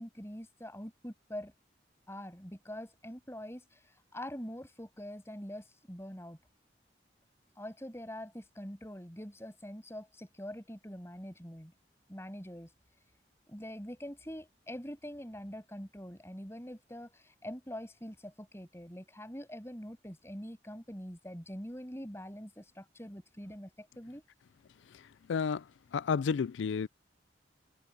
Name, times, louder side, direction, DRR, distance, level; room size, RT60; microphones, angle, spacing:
voice 1, 0.0-1.5 2.1-6.4 7.6-11.7 12.1-12.7 13.5-24.2, equal, 15° left, 6.9 m, -44 dB
voice 2, 25.3-25.6 25.9-26.9, left 6 dB, 90° left, 0.4 m, -30 dB
head